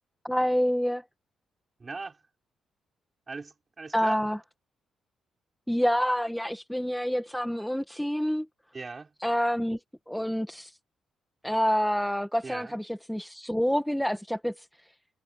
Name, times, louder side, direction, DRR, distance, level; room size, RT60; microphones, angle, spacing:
voice 1, 0.2-1.0 3.9-4.4 5.7-8.5 9.2-9.8 10.1-10.7 11.4-14.6, equal, ahead, 1.3 m, -27 dB
voice 2, 1.8-2.2 3.3-4.2 8.7-9.1 12.4-12.8, right 4 dB, 25° right, 5.7 m, -39 dB
cardioid pair, 145°, 0 cm